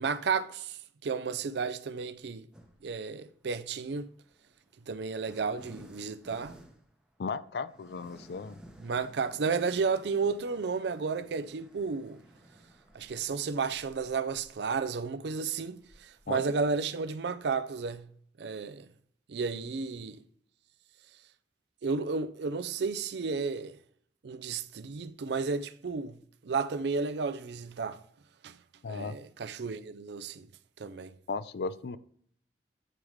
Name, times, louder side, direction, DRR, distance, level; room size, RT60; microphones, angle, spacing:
voice 1, 0.0-2.5 2.8-4.1 4.9-6.5 8.8-12.2 12.9-18.1 18.4-18.9 19.3-20.2 21.8-23.8 24.2-26.2 26.4-28.0 28.4-28.6 28.8-30.5 30.8-31.1, right 5 dB, 65° right, 0.4 m, -32 dB
sound 1, 2.5-3.0 4.0-17.5, equal, 5° right, 0.7 m, -56 dB
voice 2, 7.2-8.6 16.3-16.4 28.8-29.2 31.3-32.0, left 4 dB, 60° left, 0.4 m, -35 dB
8.7 x 4.9 x 3.1 m
head